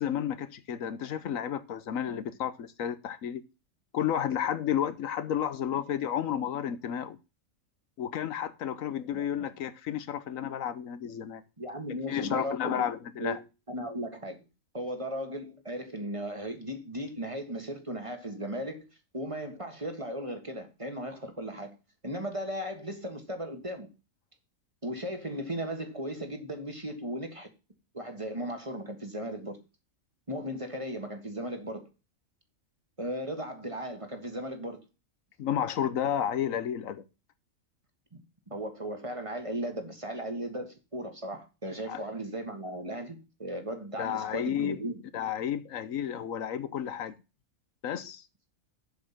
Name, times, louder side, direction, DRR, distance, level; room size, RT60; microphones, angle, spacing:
voice 1, 0.0-3.4 3.9-7.2 8.0-11.4 12.1-13.4 35.4-37.1 41.9-42.0 44.0-44.8 45.1-47.1 47.8-48.2, left 9 dB, 85° left, 1.2 m, -32 dB
voice 2, 9.1-9.5 11.6-12.8 13.2-13.4 13.7-14.5 14.7-18.8 19.1-21.8 22.0-23.9 24.8-27.5 27.9-29.6 30.3-31.9 33.0-34.8 38.5-45.0, equal, 25° right, 1.8 m, -36 dB
7.8 x 6.6 x 5.8 m
omnidirectional pair, 1.4 m